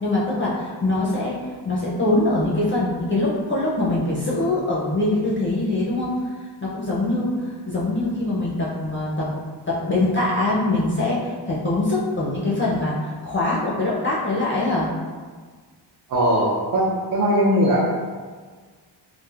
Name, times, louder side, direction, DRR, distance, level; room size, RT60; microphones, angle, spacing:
voice 1, 0.0-6.3 6.6-9.4 9.7-14.9, left 2 dB, 30° left, -6 dB, 0.4 m, -23 dB
voice 2, 16.1-17.9, equal, 50° right, -6 dB, 0.5 m, -20 dB
3.1 x 2.4 x 2.3 m, 1.5 s
wide cardioid pair, 125°, 43 cm